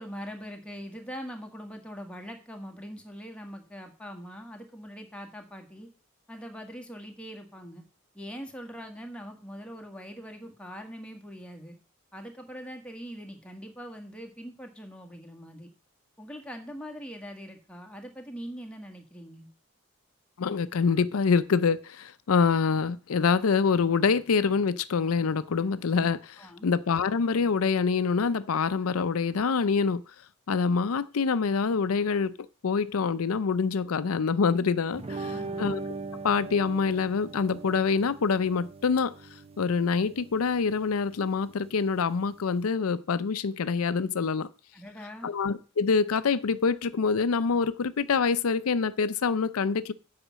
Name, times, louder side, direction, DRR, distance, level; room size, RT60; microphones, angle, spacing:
voice 1, 0.0-5.9 6.3-7.9 8.1-11.8 12.1-15.7 16.2-19.5 26.4-26.7 35.0-35.7 44.7-45.3, equal, 5° left, 1.6 m, -42 dB
voice 2, 20.4-30.0 30.5-32.3 32.6-35.3 35.6-35.8 36.2-39.1 39.6-44.5 45.2-49.9, left 5 dB, 90° left, 0.5 m, -25 dB
sound 1, 34.9-42.7, right 3 dB, 30° right, 0.5 m, -41 dB
8.1 x 5.7 x 7.4 m
head